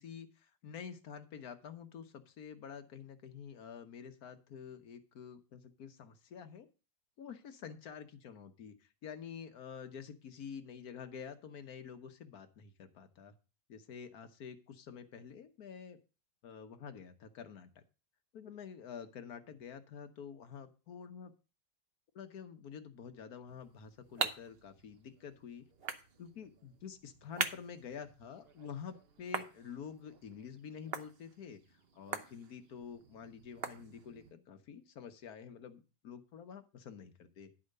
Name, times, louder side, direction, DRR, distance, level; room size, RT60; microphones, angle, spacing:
voice 1, 0.0-6.7 7.2-13.3 13.7-16.0 16.4-17.8 18.3-21.3 22.1-25.6 26.2-37.5, left 7 dB, 60° left, 8 dB, 1.3 m, -48 dB
sound 1, 23.5-34.3, right 6 dB, 50° right, 0.7 m, -44 dB
10.5 x 4.9 x 6.5 m, 0.33 s
omnidirectional pair, 2.1 m